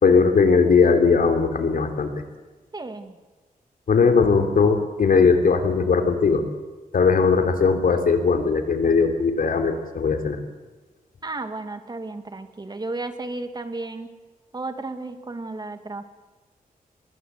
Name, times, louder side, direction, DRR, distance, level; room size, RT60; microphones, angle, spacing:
voice 1, 0.0-2.1 3.9-6.4 6.9-10.4, left 5 dB, 70° left, 6 dB, 3.1 m, -19 dB
voice 2, 2.7-3.1 11.2-14.1 14.5-16.0, right 2 dB, 30° right, 8 dB, 2.2 m, -33 dB
23.0 x 21.0 x 8.3 m, 1.2 s
wide cardioid pair, 110°, 15 cm